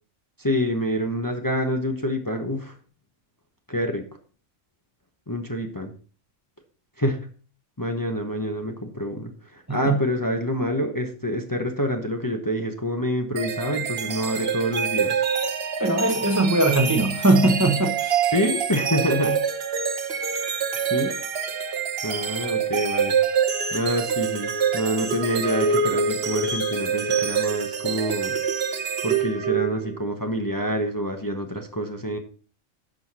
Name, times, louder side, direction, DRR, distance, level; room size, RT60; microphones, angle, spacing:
voice 1, 0.4-2.7 3.7-4.0 5.3-5.9 7.0-7.3 7.8-15.2 18.3-19.5 20.9-21.1 22.0-23.2 23.7-28.4 29.0-32.2, equal, 15° left, 1.0 m, -27 dB
sound 1, 13.4-30.0, right 6 dB, 55° right, 1.1 m, -26 dB
voice 2, 15.8-18.2, right 2 dB, 15° right, 1.0 m, -20 dB
11.0 x 6.5 x 4.2 m
omnidirectional pair, 1.3 m